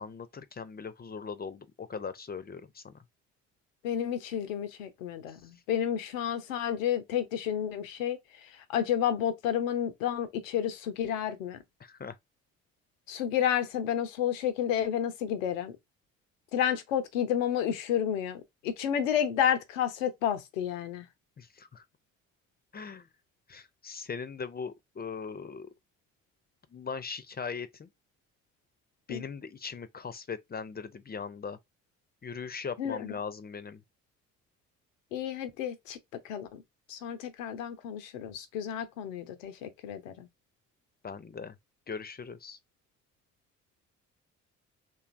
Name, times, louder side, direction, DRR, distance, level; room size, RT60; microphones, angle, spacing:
voice 1, 0.0-2.9 11.8-12.2 21.4-21.8 22.7-23.1 23.5-25.7 26.7-27.9 29.1-31.6 32.2-33.8 41.0-41.6 41.9-42.6, left 5 dB, 25° left, 0.5 m, -39 dB
voice 2, 3.8-11.6 13.1-15.7 16.5-21.1 29.1-29.2 32.8-33.1 35.1-36.0 36.2-36.6 36.9-40.3, left 9 dB, 90° left, 0.6 m, -31 dB
2.6 x 2.3 x 2.5 m
hypercardioid pair, 45°, 38 cm